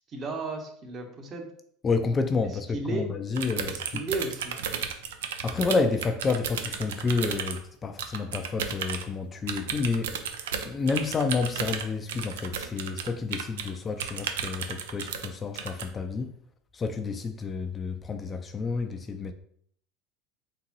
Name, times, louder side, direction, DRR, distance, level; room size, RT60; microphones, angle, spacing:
voice 1, 0.1-1.5 2.4-3.1 3.6-4.6, right 3 dB, 40° right, 1.1 m, -34 dB
voice 2, 1.8-4.0 5.4-10.1 10.7-16.3 16.7-19.3, left 4 dB, 25° left, 0.4 m, -29 dB
sound 1, 3.3-7.6 8.0-9.0 9.5-13.7 14.0-15.3 15.6-15.8, right 7 dB, 85° right, 0.5 m, -34 dB
3.9 x 3.7 x 3.0 m
supercardioid pair, 100°, 0 cm